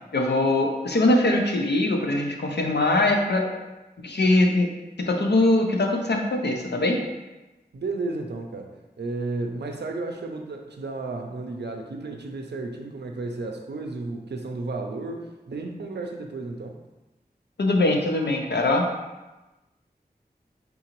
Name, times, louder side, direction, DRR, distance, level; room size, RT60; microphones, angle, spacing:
voice 1, 0.1-3.5 4.0-4.7 5.0-7.0 17.6-18.9, left 2 dB, 85° left, 1 dB, 0.6 m, -22 dB
voice 2, 7.7-16.8, right 3 dB, 90° right, 3 dB, 0.5 m, -33 dB
3.8 x 3.8 x 3.0 m, 1.1 s
wide cardioid pair, 40°, 17 cm